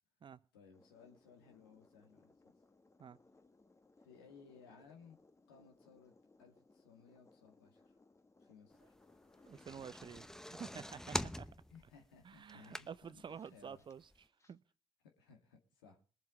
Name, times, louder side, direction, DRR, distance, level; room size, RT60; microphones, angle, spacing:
voice 1, 0.5-2.3 4.0-5.2 5.5-6.1 6.4-8.0 8.4-9.0 11.7-13.8 15.0-16.0, left 6 dB, 85° left, 1.9 m, -61 dB
sound 1, 0.7-14.5, left 3 dB, 25° left, 1.4 m, -68 dB
sound 2, 9.3-13.3 13.7-13.8 14.1-14.2, left 1 dB, 5° left, 0.8 m, -43 dB
voice 2, 9.5-11.5 12.2-14.0 14.5-14.6, right 7 dB, 45° right, 0.7 m, -50 dB
21.5 x 7.4 x 4.9 m
hypercardioid pair, 40°, 12 cm